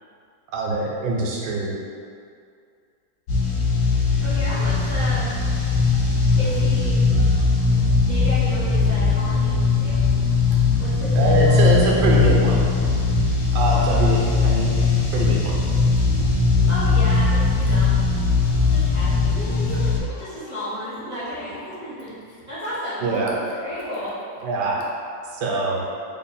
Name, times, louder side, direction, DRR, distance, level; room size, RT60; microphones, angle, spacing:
voice 1, 0.5-1.7 11.2-12.6 13.5-14.7 15.1-15.6 23.0-23.3 24.4-24.8 25.4-25.8, right 3 dB, 75° right, -3 dB, 1.2 m, -23 dB
sound 1, 3.3-20.0, left 4 dB, 90° left, 1.3 m, -19 dB
voice 2, 4.2-5.3 6.1-7.0 7.6-7.8 8.0-10.1 10.8-12.3 16.7-17.9 18.7-19.3 19.8-23.1 23.6-24.1, equal, 45° right, -11 dB, 0.5 m, -33 dB
voice 3, 12.8-13.1 15.6-16.2 19.3-21.1 21.5-21.7 23.4-24.1 24.7-24.8 25.6-26.0, left 4 dB, 70° left, -4 dB, 1.1 m, -40 dB
3.6 x 2.0 x 4.0 m, 2.3 s
omnidirectional pair, 2.0 m